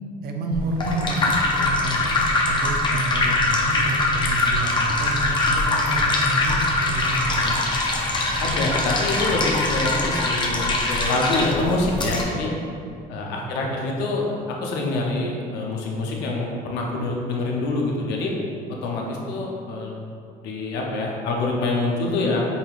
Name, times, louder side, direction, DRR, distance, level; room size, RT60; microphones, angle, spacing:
voice 1, 0.2-7.7 13.4-13.8, right 2 dB, 70° right, 3 dB, 0.5 m, -29 dB
sound 1, 0.5-12.2, left 2 dB, 30° left, 0.6 m, -22 dB
voice 2, 8.4-12.5 13.1-18.3 18.8-19.9 20.4-22.5, left 2 dB, 90° left, -1 dB, 0.7 m, -25 dB
5.3 x 3.0 x 2.4 m, 2.4 s
cardioid pair, 110°, 17 cm